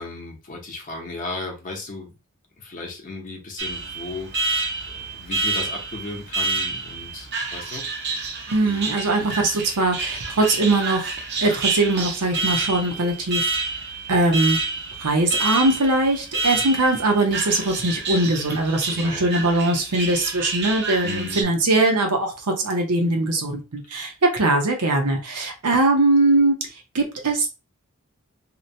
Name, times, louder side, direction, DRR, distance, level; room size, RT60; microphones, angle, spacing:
voice 1, 0.0-2.1 2.6-7.8 8.6-8.9 18.9-19.3 21.0-21.5 23.9-24.2, left 3 dB, 35° left, 0.7 m, -36 dB
Alarm, 3.6-21.4, right 3 dB, 50° right, 0.6 m, -28 dB
voice 2, 8.5-11.1 11.4-13.5 14.1-14.6 15.0-26.6 26.9-27.5, right 2 dB, 85° right, 0.8 m, -21 dB
2.8 x 2.1 x 2.6 m
head